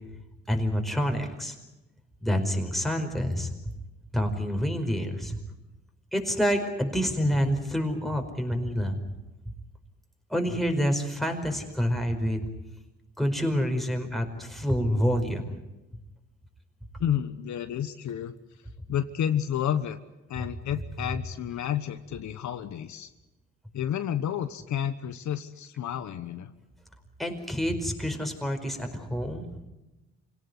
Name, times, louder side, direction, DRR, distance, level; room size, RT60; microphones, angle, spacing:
voice 1, 0.5-1.5 2.2-3.5 4.1-5.4 6.1-9.0 10.3-12.5 13.2-15.6 27.2-29.5, equal, ahead, 3 dB, 4.9 m, -27 dB
voice 2, 17.0-18.3 18.9-20.0 20.3-23.1 23.7-26.5, left 10 dB, 70° left, 10 dB, 1.3 m, -30 dB
26.5 x 18.0 x 9.7 m, 1.0 s
cardioid pair, 90°, 30 cm